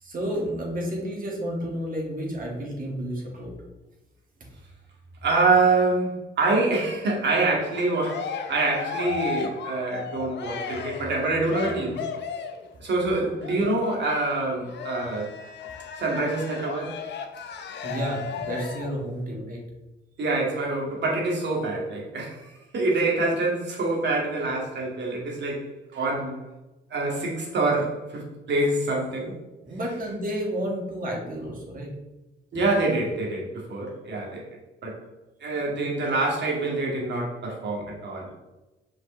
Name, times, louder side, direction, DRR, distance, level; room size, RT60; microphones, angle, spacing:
voice 1, 0.0-3.5 17.8-19.6 29.6-31.9, equal, 45° right, -1 dB, 2.1 m, -31 dB
voice 2, 5.2-12.1 12.8-15.3 16.0-17.0 20.2-26.4 26.9-29.4 32.5-34.4 34.8-35.0 35.4-38.3, right 2 dB, 60° right, -2 dB, 2.2 m, -26 dB
Cheering, 7.7-12.7 13.4-19.0, left 6 dB, 60° left, 0.8 m, -35 dB
5.8 x 5.2 x 3.3 m, 1.0 s
cardioid pair, 90°, 20 cm